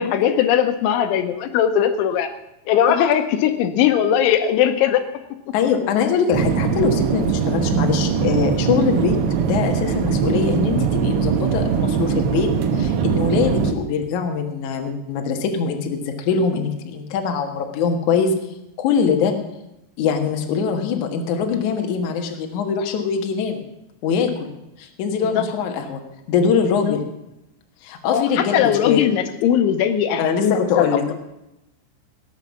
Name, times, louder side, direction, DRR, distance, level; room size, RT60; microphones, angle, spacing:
voice 1, 0.0-2.3 2.7-5.0 25.2-25.5 26.8-27.0 28.1-31.1, left 9 dB, 80° left, 8 dB, 3.2 m, -19 dB
voice 2, 5.5-18.3 18.8-19.3 20.0-23.7 24.0-24.5 24.8-26.0 26.3-27.0 27.8-29.0 30.2-31.1, left 6 dB, 65° left, 4 dB, 2.0 m, -22 dB
sound 1, 6.3-13.7, right 7 dB, 70° right, 2.9 m, -21 dB
17.5 x 8.1 x 7.2 m, 0.90 s
omnidirectional pair, 5.6 m